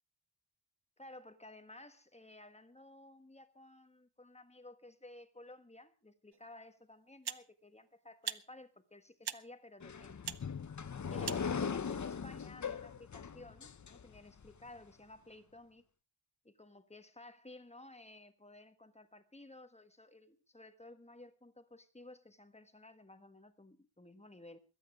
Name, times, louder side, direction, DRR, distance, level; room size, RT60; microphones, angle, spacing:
voice 1, 1.0-10.3 11.1-15.8 16.4-24.6, left 2 dB, 15° left, 1.5 m, -55 dB
sound 1, 6.3-6.4 7.2-7.5 8.2-8.4 9.2-9.4 10.2-10.4 11.2-11.4, right 8 dB, 65° right, 0.9 m, -40 dB
sound 2, 9.8-14.5, left 6 dB, 45° left, 0.8 m, -40 dB
21.5 x 9.3 x 5.0 m
wide cardioid pair, 120°, 42 cm